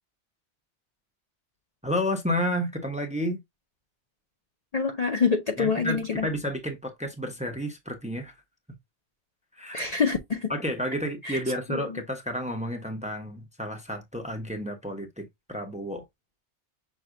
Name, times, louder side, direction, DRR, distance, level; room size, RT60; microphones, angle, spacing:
voice 1, 1.8-3.4 5.6-8.4 9.5-9.8 10.5-16.0, equal, 5° right, 0.7 m, -31 dB
voice 2, 4.7-6.3 9.7-10.5 11.2-11.4 11.7-12.0, left 5 dB, 45° left, 0.6 m, -26 dB
6.2 x 2.2 x 3.7 m
omnidirectional pair, 1.1 m